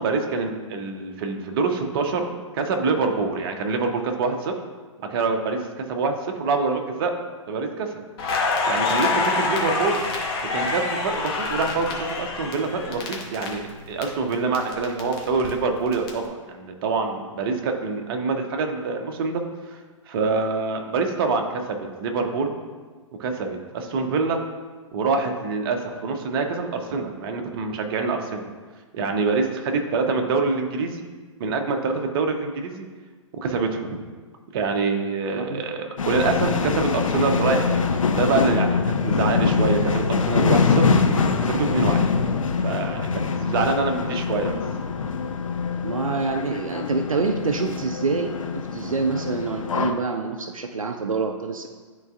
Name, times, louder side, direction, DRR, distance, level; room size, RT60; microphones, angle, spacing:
voice 1, 0.0-2.3 2.5-4.5 5.1-7.1 7.5-7.9 8.7-10.0 10.5-19.4 19.7-19.8 20.1-22.5 23.2-24.4 24.9-28.5 28.9-31.1 31.4-32.9 33.4-34.0 34.5-37.8 38.1-40.9 41.3-42.1 42.6-44.6, right 4 dB, 45° right, 4 dB, 0.8 m, -25 dB
Crackle, 8.2-14.0 14.3-16.1, left 3 dB, 45° left, 1.2 m, -26 dB
voice 2, 35.3-35.6 45.8-51.7, right 4 dB, 85° right, 5 dB, 0.5 m, -26 dB
sound 1, 36.0-49.9, left 5 dB, 75° left, 0.6 m, -24 dB
10.5 x 4.0 x 2.4 m, 1.4 s
figure-of-eight pair, 115°, 17 cm